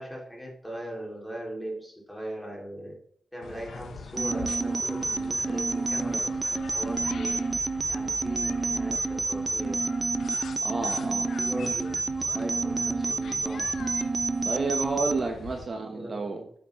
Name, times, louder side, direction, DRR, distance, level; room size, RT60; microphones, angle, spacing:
voice 1, 0.0-3.0 3.3-7.4 7.9-9.8 11.2-13.8 15.7-16.5, right 1 dB, 5° left, -3 dB, 2.6 m, -40 dB
sound 1, 3.4-15.7, left 5 dB, 85° left, 0.8 m, -43 dB
sound 2, 4.2-15.2, right 3 dB, 20° right, 0.4 m, -29 dB
voice 2, 10.6-11.3 14.4-16.4, right 3 dB, 35° right, 3 dB, 1.0 m, -30 dB
9.0 x 7.1 x 3.1 m, 0.63 s
wide cardioid pair, 160°, 0 cm